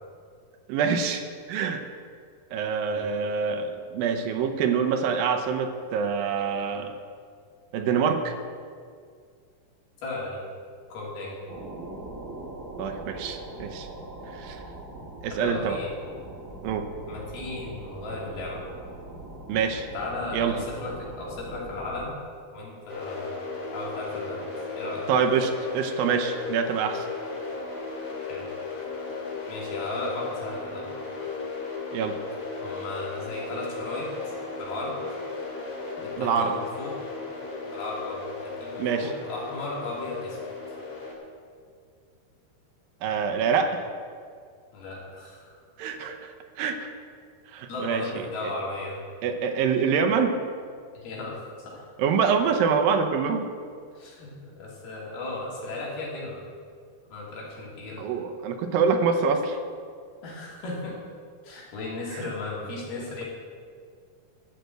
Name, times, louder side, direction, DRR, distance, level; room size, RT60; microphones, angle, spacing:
voice 1, 0.7-1.2 1.5-1.8 2.5-7.0 7.7-8.4 12.8-13.9 14.4-14.6 15.2-15.8 16.6-16.9 19.5-19.9 20.3-20.6 25.1-27.1 31.9-32.2 36.2-36.6 38.8-39.1 43.0-43.8 45.8-46.9 47.5-48.2 49.2-50.4 52.0-53.5 58.0-59.6 62.1-62.3, right 6 dB, 80° right, 6 dB, 2.4 m, -25 dB
voice 2, 10.0-10.4 10.9-11.3 15.3-15.9 17.1-18.6 19.9-22.2 22.5-24.5 24.8-25.0 28.3-28.5 29.5-30.9 32.6-34.3 34.6-34.9 36.0-37.0 37.7-40.4 44.7-45.5 47.7-49.0 51.0-51.8 53.9-56.4 57.1-58.0 60.2-60.9 61.4-63.2, left 2 dB, 80° left, -5 dB, 4.7 m, -35 dB
sound 1, 11.5-22.1, right 2 dB, 40° right, 1.5 m, -41 dB
sound 2, 22.9-41.1, left 4 dB, 35° left, 2.5 m, -36 dB
13.0 x 6.6 x 7.8 m, 2.1 s
omnidirectional pair, 4.3 m